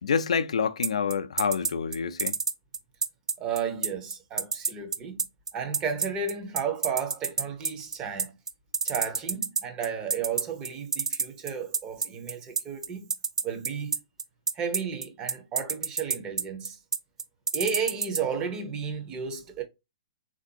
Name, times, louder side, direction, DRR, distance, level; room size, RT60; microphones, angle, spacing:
voice 1, 0.0-2.3, left 6 dB, 75° left, 0.3 m, -27 dB
sound 1, 0.8-18.2, right 5 dB, 85° right, 0.4 m, -27 dB
voice 2, 3.4-5.3 5.5-8.4 8.8-13.1 13.4-14.0 14.6-16.8 17.5-19.6, right 6 dB, 25° right, 0.7 m, -33 dB
3.5 x 2.5 x 2.6 m
hypercardioid pair, 135°, 3 cm